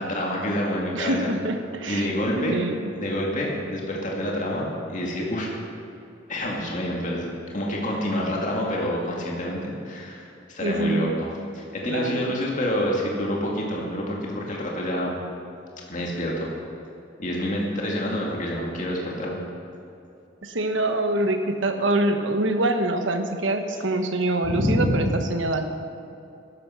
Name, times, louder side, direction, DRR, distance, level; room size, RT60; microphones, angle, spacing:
voice 1, 0.0-1.3 1.8-2.7 2.9-5.5 6.3-7.3 7.5-11.3 11.5-15.2 15.9-16.5 17.2-19.4 24.4-24.9, equal, 40° left, -2 dB, 2.2 m, -27 dB
voice 2, 0.9-2.1 2.4-2.9 10.6-11.2 11.9-12.3 20.4-25.6, right 1 dB, 80° right, 6 dB, 1.3 m, -25 dB
14.0 x 11.5 x 5.7 m, 2.7 s
head